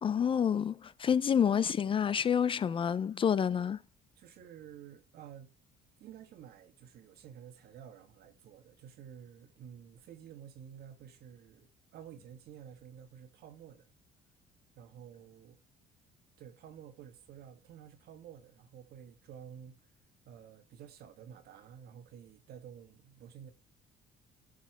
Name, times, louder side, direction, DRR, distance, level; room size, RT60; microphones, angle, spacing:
voice 1, 0.0-3.8, left 8 dB, 30° left, 0.4 m, -28 dB
voice 2, 4.2-5.5 6.0-13.9 14.7-15.6 16.4-19.8 20.2-23.5, right 9 dB, 70° right, 1.4 m, -51 dB
11.0 x 4.2 x 3.3 m
cardioid pair, 110°, 17 cm